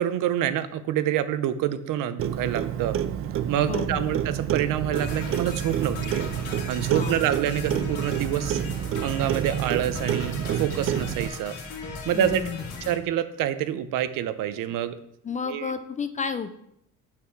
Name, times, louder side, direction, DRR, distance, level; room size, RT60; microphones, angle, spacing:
voice 1, 0.0-3.0 3.5-6.2 6.7-8.6 9.0-11.5 12.0-12.4 12.8-15.0 15.5-15.7, right 10 dB, 80° right, 12 dB, 0.7 m, -27 dB
Clock, 2.2-11.3, right 10 dB, 45° right, 0.4 m, -29 dB
voice 2, 3.7-4.1 6.9-7.2 12.1-12.7 15.2-16.5, left 6 dB, 25° left, 10 dB, 0.4 m, -31 dB
sound 1, 4.9-13.0, left 4 dB, 80° left, 1.7 m, -38 dB
8.4 x 5.8 x 4.6 m, 0.74 s
cardioid pair, 175°, 32 cm